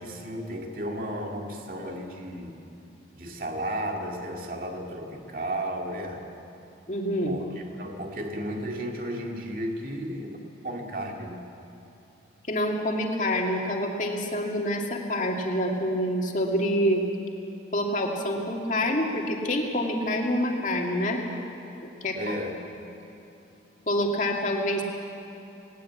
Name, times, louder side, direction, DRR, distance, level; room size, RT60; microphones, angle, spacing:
voice 1, 0.0-2.6 3.1-6.3 7.3-11.5 22.1-22.6, right 1 dB, 50° right, 2 dB, 2.2 m, -34 dB
voice 2, 6.9-7.4 12.5-17.0 17.7-21.2 22.0-22.2 23.9-24.9, equal, 45° left, 0 dB, 2.3 m, -26 dB
19.0 x 18.5 x 8.5 m, 2.9 s
head